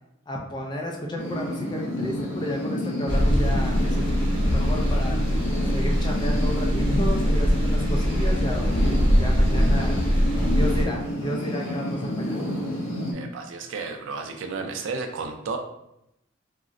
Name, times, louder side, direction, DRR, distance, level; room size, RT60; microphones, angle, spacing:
voice 1, 0.3-4.0 4.4-5.4 5.7-10.0 10.5-12.5, equal, 20° left, 0 dB, 0.3 m, -32 dB
sound 1, 1.2-13.1, left 1 dB, 80° left, 0.6 m, -29 dB
sound 2, 3.1-10.8, equal, 25° right, 0.7 m, -22 dB
voice 2, 13.1-15.6, right 4 dB, 70° right, 4 dB, 0.4 m, -32 dB
3.7 x 2.0 x 2.4 m, 0.83 s
head